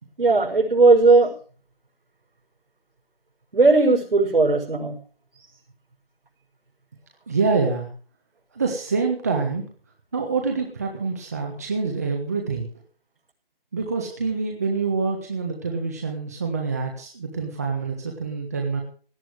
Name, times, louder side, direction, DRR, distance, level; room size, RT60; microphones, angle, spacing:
voice 1, 0.2-1.3 3.5-5.0, right 3 dB, 70° right, -2 dB, 6.0 m, -17 dB
voice 2, 7.3-7.9 8.5-9.6 10.1-12.7 13.7-18.8, right 4 dB, 15° right, 1 dB, 1.4 m, -26 dB
17.5 x 11.5 x 4.8 m, 0.41 s
hypercardioid pair, 175°, 29 cm